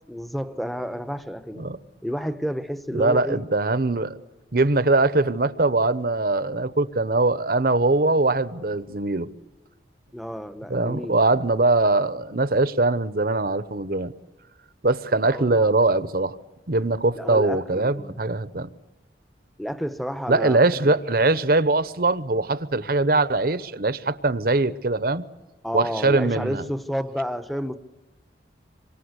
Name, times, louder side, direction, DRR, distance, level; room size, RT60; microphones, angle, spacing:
voice 1, 0.1-1.7 2.0-3.5 10.1-11.5 15.2-15.7 17.2-18.2 19.6-21.0 25.6-27.8, equal, ahead, 0.9 m, -31 dB
voice 2, 2.9-4.2 4.5-9.3 10.7-14.1 14.8-16.4 16.7-18.7 20.3-25.2 25.7-26.6, right 2 dB, 55° right, 0.9 m, -22 dB
27.0 x 24.5 x 8.2 m
head